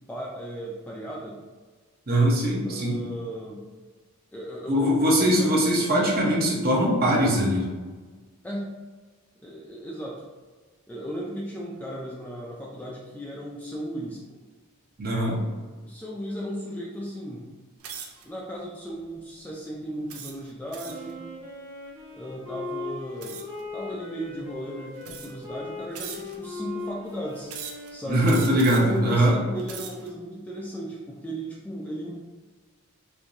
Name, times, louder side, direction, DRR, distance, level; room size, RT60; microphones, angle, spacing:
voice 1, 0.1-1.4 2.6-3.6 4.3-6.0 8.4-8.7 9.4-10.2 10.9-14.2 15.8-17.4 18.2-21.3 22.1-23.4 23.7-27.5 27.9-28.2 28.7-32.2, equal, 5° left, -4 dB, 0.4 m, -36 dB
voice 2, 2.1-3.0 4.7-7.7 15.0-15.4 28.1-29.3, equal, 40° right, -3 dB, 0.8 m, -21 dB
sound 1, 17.8-18.3 18.9-19.2 20.1-21.1 23.2-23.6 24.4-24.5 25.0-25.5 25.9-26.5 27.5-27.9 28.2-29.0 29.5-30.1, right 7 dB, 75° right, 0.5 m, -40 dB
Wind instrument woodwind instrument, 20.8-29.0, left 3 dB, 60° right, 1.2 m, -39 dB
4.5 x 2.7 x 2.6 m, 1.4 s
head